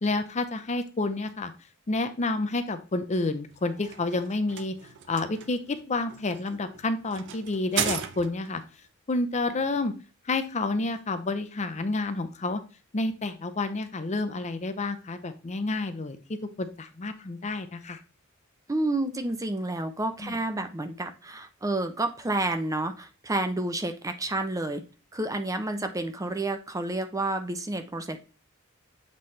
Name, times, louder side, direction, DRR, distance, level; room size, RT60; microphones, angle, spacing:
voice 1, 0.0-1.5 1.9-4.7 5.1-8.6 9.1-9.9 10.3-12.6 12.9-16.2 16.6-18.0 20.2-20.4, left 2 dB, 35° left, 9 dB, 0.6 m, -29 dB
sound 1, 3.5-8.6, right 8 dB, 60° right, 0.6 m, -36 dB
voice 2, 18.7-24.8 25.1-28.2, right 2 dB, 15° right, 7 dB, 0.6 m, -30 dB
7.6 x 4.1 x 3.2 m, 0.33 s
head